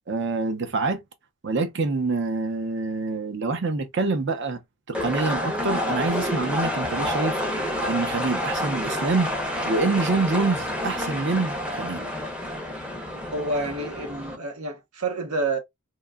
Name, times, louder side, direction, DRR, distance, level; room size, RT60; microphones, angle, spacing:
voice 1, 0.1-1.0 1.4-4.6 4.9-7.4 7.8-9.3 9.6-12.1, right 3 dB, 55° right, 0.6 m, -26 dB
sound 1, 4.9-14.3, left 1 dB, 5° right, 0.6 m, -29 dB
voice 2, 13.3-15.6, right 2 dB, 85° right, 0.9 m, -28 dB
2.9 x 2.2 x 2.2 m
head